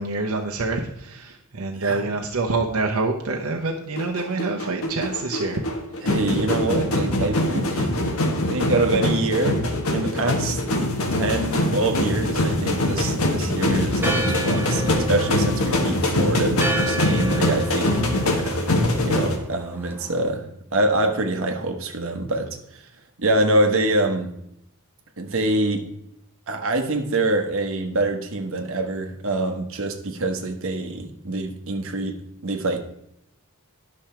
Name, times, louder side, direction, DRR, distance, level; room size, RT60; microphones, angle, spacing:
voice 1, 0.0-5.6 18.3-18.7, right 3 dB, 85° right, 1 dB, 0.9 m, -26 dB
sound 1, 4.0-19.4, left 1 dB, 80° left, 1.5 m, -23 dB
voice 2, 6.0-7.9 8.5-9.6 9.9-10.6 11.0-18.3 19.0-22.6 23.2-24.3 25.2-25.8 26.5-32.2 32.4-32.8, right 2 dB, 65° right, 4 dB, 1.3 m, -25 dB
Church bell, 14.0-20.3, right 2 dB, 10° right, 0.9 m, -32 dB
10.5 x 6.2 x 4.4 m, 0.77 s
head